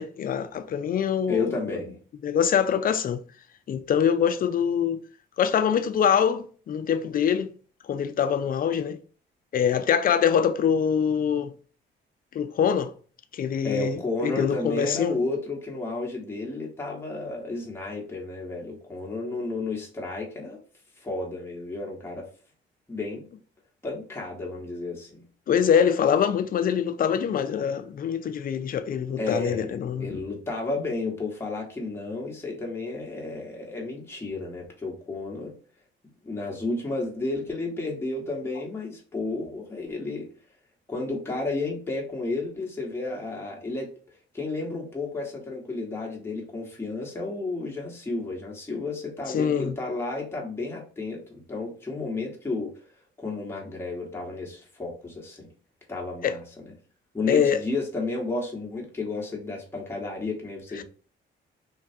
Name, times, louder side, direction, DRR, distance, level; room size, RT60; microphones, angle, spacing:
voice 1, 0.0-1.8 2.2-3.2 3.7-5.0 5.4-7.5 7.9-9.0 9.5-11.5 12.3-12.9 13.3-15.2 25.5-30.2 49.3-49.7 56.2-56.4 57.3-57.6 60.8-60.9, left 8 dB, 45° left, 0.4 m, -24 dB
voice 2, 1.3-2.0 13.6-20.6 21.0-22.3 22.9-23.3 23.8-25.2 29.1-29.7 30.0-35.6 36.2-40.3 40.9-43.9 44.3-52.7 53.2-55.5 55.9-56.6 57.1-60.8, left 3 dB, 10° left, 1.0 m, -32 dB
3.2 x 2.3 x 2.6 m
cardioid pair, 90°, 20 cm